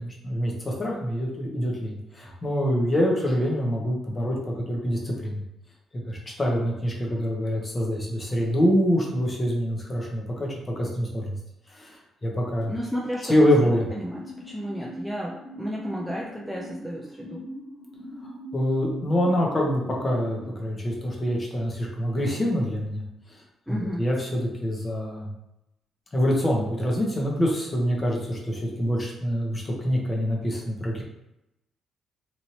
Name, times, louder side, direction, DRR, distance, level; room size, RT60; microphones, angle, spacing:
voice 1, 0.0-5.4 6.1-11.3 11.7-12.7 13.2-13.9 18.5-23.4 23.7-25.3 26.1-31.0, equal, 25° left, -2 dB, 0.9 m, -25 dB
voice 2, 12.6-13.4 13.7-17.5 23.7-24.1, equal, ahead, -4 dB, 0.5 m, -33 dB
sound 1, 13.3-20.4, equal, 65° left, 1.3 m, -42 dB
3.1 x 2.6 x 2.9 m, 0.89 s
cardioid pair, 90°, 0 cm